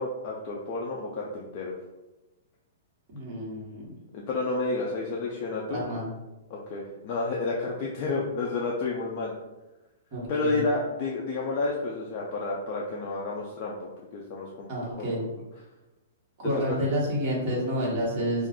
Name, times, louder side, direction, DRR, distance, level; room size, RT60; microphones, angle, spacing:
voice 1, 0.0-1.7 4.1-5.8 6.5-9.3 10.3-14.7 15.0-15.1 16.7-16.8, left 3 dB, 30° left, -3 dB, 0.3 m, -30 dB
voice 2, 3.1-3.8 5.7-6.1 10.1-10.6 14.7-15.2 16.4-18.5, equal, 30° right, -5 dB, 1.1 m, -29 dB
2.4 x 2.3 x 3.5 m, 1.1 s
hypercardioid pair, 170°, 0 cm